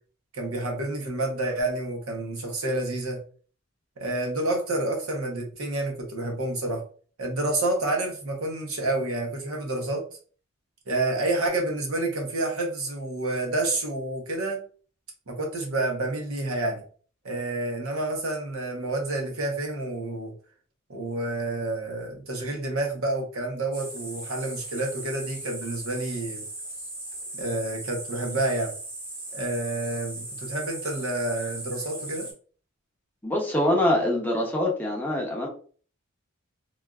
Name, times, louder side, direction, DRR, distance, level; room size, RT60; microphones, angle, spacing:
voice 1, 0.3-3.2 4.0-6.8 7.2-10.1 10.9-14.6 15.3-16.8 17.2-20.3 20.9-26.4 27.3-28.7 29.3-32.3, right 2 dB, 80° right, 1 dB, 0.9 m, -29 dB
sound 1, 23.7-32.3, right 2 dB, 30° right, 1.5 m, -38 dB
voice 2, 33.2-35.5, left 1 dB, 10° left, -1 dB, 0.7 m, -24 dB
3.3 x 2.4 x 2.3 m, 0.42 s
head